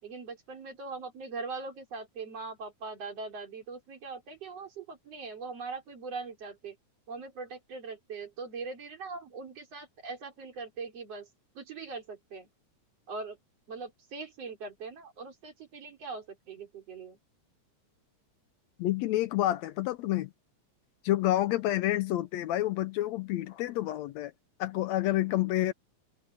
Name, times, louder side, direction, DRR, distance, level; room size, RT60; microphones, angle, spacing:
voice 1, 0.0-6.8 7.1-11.3 11.5-12.5 13.1-13.4 13.7-17.2, right 4 dB, 55° right, 4.8 m, -41 dB
voice 2, 18.8-20.3 21.0-24.3 24.6-25.7, left 14 dB, 75° left, 1.8 m, -28 dB
omnidirectional pair, 3.4 m